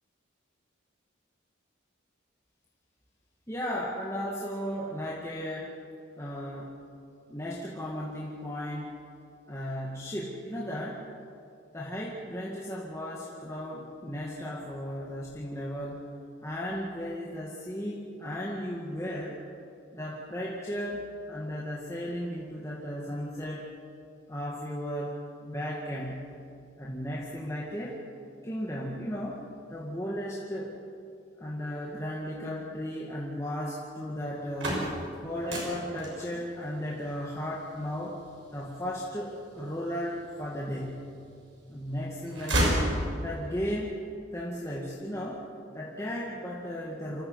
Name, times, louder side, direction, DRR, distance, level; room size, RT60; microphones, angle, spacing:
voice 1, 3.5-5.7 6.2-6.8 7.3-9.0 9.5-11.1 11.7-16.1 16.4-19.4 19.9-23.7 24.3-26.3 26.8-28.0 28.4-30.7 31.4-34.9 35.2-38.2 38.5-41.1 41.7-42.9 43.2-44.0 44.3-45.4 45.7-47.2, equal, 15° left, -5 dB, 2.0 m, -35 dB
sound 1, 34.3-40.2 40.8-41.6 41.9-43.5, right 1 dB, 75° right, 6.4 m, -32 dB
26.0 x 15.0 x 8.1 m, 2.5 s
head